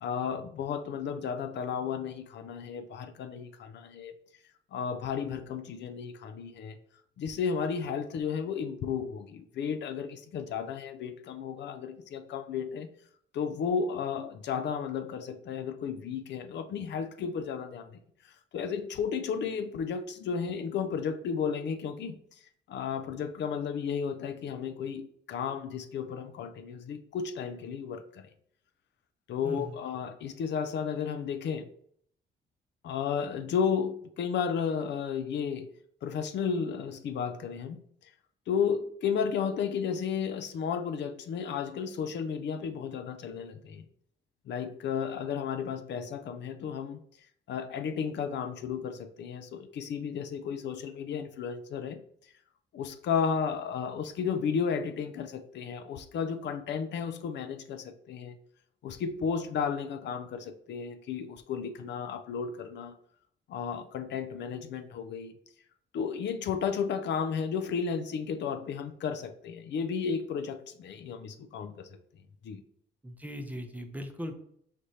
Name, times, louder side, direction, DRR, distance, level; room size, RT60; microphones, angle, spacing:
voice 1, 0.0-4.1 4.7-6.8 7.2-12.9 13.3-17.9 18.5-22.2 22.7-28.3 29.3-31.7 32.8-35.7 36.0-37.8 38.5-43.8 44.5-47.0 47.5-52.0 52.7-58.3 58.8-63.0 63.5-65.3 65.9-71.9 72.4-72.6, left 6 dB, 60° left, 0.4 m, -33 dB
voice 2, 29.4-29.8 73.0-74.3, equal, 10° right, 0.6 m, -39 dB
5.0 x 3.1 x 2.7 m
cardioid pair, 90°, 20 cm